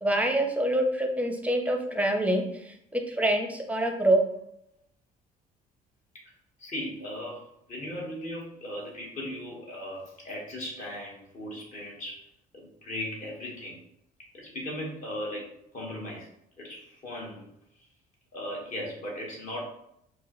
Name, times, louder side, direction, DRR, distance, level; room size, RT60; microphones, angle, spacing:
voice 1, 0.0-4.2, right 1 dB, 10° right, 4 dB, 0.6 m, -26 dB
voice 2, 6.6-7.4 7.7-12.2 12.5-13.8 14.3-15.5 15.7-16.3 16.6-17.5 18.3-19.6, left 1 dB, 50° left, -3 dB, 1.5 m, -37 dB
4.5 x 2.2 x 3.1 m, 0.74 s
cardioid pair, 110°, 17 cm